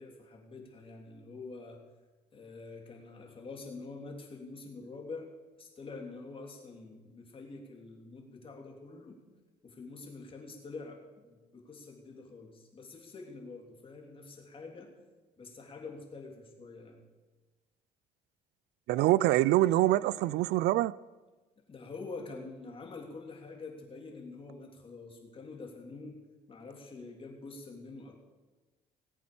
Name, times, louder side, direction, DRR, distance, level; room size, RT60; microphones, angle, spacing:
voice 1, 0.0-1.8 2.3-5.3 5.6-9.2 9.6-14.9 15.4-17.0 21.7-26.2 26.5-28.2, left 3 dB, 30° left, 3.4 m, -46 dB
voice 2, 18.9-20.9, right 16 dB, 85° right, 0.4 m, -25 dB
19.0 x 8.4 x 7.0 m
cardioid pair, 110°, 17 cm